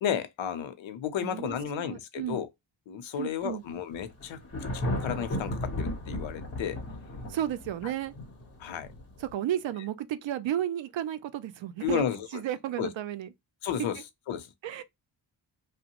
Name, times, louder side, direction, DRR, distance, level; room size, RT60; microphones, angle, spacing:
voice 1, 0.0-2.5 2.9-4.4 4.7-6.8 8.6-8.9 11.8-12.3 12.8-12.9 13.6-14.0 14.3-14.5, left 9 dB, 85° left, 0.7 m, -32 dB
voice 2, 1.2-2.4 3.2-3.6 7.3-8.1 9.2-12.0 12.3-13.3 14.6-14.8, right 11 dB, 75° right, 0.6 m, -33 dB
Thunder, 3.9-9.3, left 1 dB, 30° left, 0.9 m, -35 dB
2.9 x 2.1 x 2.9 m
wide cardioid pair, 145°, 45 cm